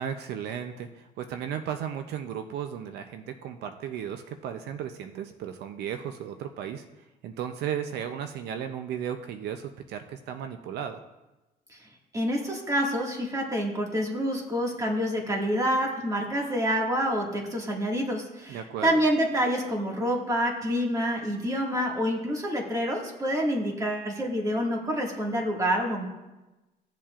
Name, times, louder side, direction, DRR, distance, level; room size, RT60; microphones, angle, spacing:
voice 1, 0.0-6.8 7.2-11.0 18.5-19.0, right 9 dB, 75° right, 7 dB, 0.6 m, -35 dB
voice 2, 12.1-26.0, equal, 20° right, -1 dB, 1.9 m, -27 dB
15.5 x 7.3 x 2.5 m, 1.1 s
cardioid pair, 110°, 17 cm